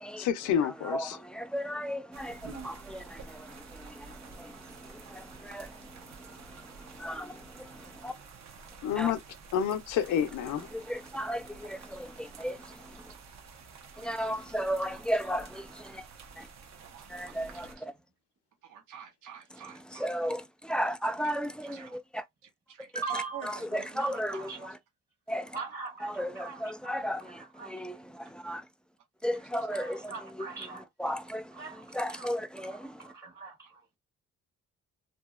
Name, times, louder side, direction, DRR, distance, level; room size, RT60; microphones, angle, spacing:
voice 1, 0.2-1.2 8.8-9.2 9.5-10.7, left 8 dB, 80° left, 0.6 m, -29 dB
voice 2, 0.9-8.1 9.0-9.1 10.7-13.0 14.0-16.0 16.4-16.5 17.1-17.7 19.9-22.2 22.9-23.0 23.4-24.7 25.3-25.6 26.0-28.6 29.2-33.1, equal, 5° left, 0.4 m, -35 dB
sound 1, 2.1-17.8, right 5 dB, 65° right, 0.9 m, -50 dB
voice 3, 11.9-12.4 13.0-13.2 13.9-15.3 16.8-17.8 18.6-20.2 21.2-21.3 21.6-22.0 22.7-24.7 29.3-29.5, right 8 dB, 85° right, 1.0 m, -50 dB
voice 4, 22.9-23.4 24.0-24.7 25.5-27.7 29.7-30.9 31.5-33.8, right 4 dB, 35° right, 1.1 m, -41 dB
2.7 x 2.7 x 2.3 m
cardioid pair, 90°, 30 cm